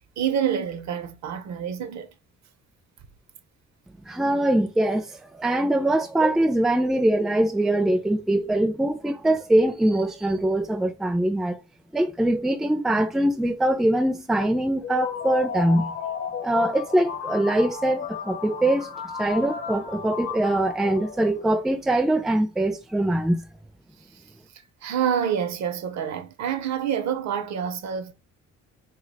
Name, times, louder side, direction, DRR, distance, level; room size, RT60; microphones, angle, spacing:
voice 1, 0.2-2.1 24.8-28.1, right 8 dB, 65° right, 0.6 m, -27 dB
voice 2, 4.0-11.6 11.9-15.9 16.4-18.9 19.2-23.4, right 1 dB, ahead, 0.4 m, -23 dB
sound 1, 14.8-21.6, left 7 dB, 50° left, 0.8 m, -34 dB
2.7 x 2.1 x 3.9 m
cardioid pair, 90°, 30 cm